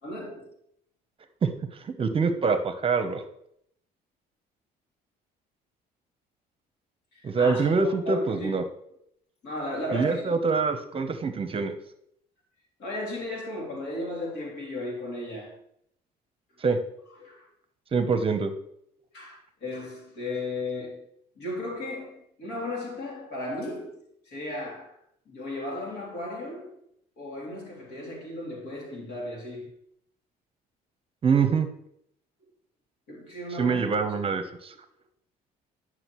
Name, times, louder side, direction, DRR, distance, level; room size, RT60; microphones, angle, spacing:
voice 1, 0.0-0.5 7.1-8.5 9.4-10.4 12.8-15.6 17.2-17.5 19.1-24.9 25.3-26.8 27.2-29.7 33.1-33.8 34.1-34.4, left 2 dB, 75° left, 3.1 m, -35 dB
voice 2, 1.8-3.2 7.2-8.6 9.9-11.7 16.6-16.8 17.9-18.5 31.2-31.7 33.6-34.7, right 5 dB, 35° right, 0.8 m, -25 dB
9.9 x 6.1 x 3.1 m
cardioid pair, 110°, 17 cm